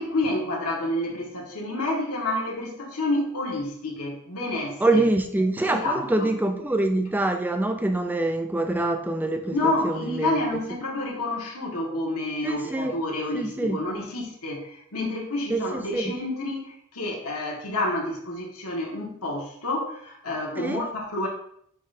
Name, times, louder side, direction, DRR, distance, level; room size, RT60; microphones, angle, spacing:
voice 1, 0.0-5.0 5.6-6.3 9.5-21.3, left 2 dB, 80° left, -1 dB, 1.7 m, -29 dB
voice 2, 4.8-10.3 12.4-12.9 13.3-13.8 15.5-16.1 20.6-20.9, right 2 dB, 10° right, 6 dB, 0.4 m, -25 dB
9.9 x 3.8 x 2.7 m, 0.67 s
head